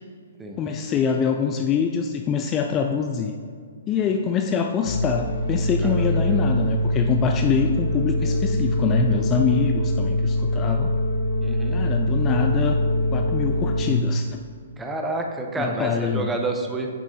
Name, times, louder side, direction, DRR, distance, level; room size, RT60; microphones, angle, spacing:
voice 1, 0.6-3.4 3.9-10.9 11.7-12.8 13.1-14.4 15.6-16.3, left 6 dB, 20° left, 4 dB, 0.3 m, -24 dB
sound 1, 4.8-13.8, left 1 dB, 50° left, 1.1 m, -23 dB
voice 2, 5.8-6.4 8.2-8.4 11.4-11.8 14.8-16.9, right 2 dB, 10° right, 2 dB, 0.7 m, -29 dB
8.4 x 5.9 x 2.8 m, 2.1 s
figure-of-eight pair, 125°, 0 cm